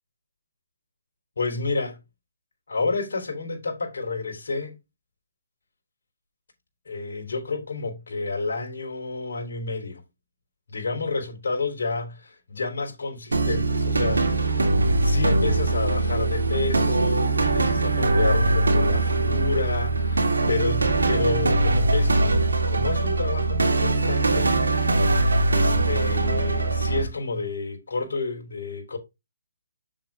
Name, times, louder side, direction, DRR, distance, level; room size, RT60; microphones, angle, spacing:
voice 1, 1.4-2.0 2.7-4.8 6.9-10.0 10.7-24.6 25.1-29.0, left 3 dB, 70° left, 3.7 m, -30 dB
sound 1, 13.3-27.0, right 2 dB, 90° right, 2.5 m, -22 dB
7.4 x 7.1 x 3.6 m
hypercardioid pair, 150°, 0 cm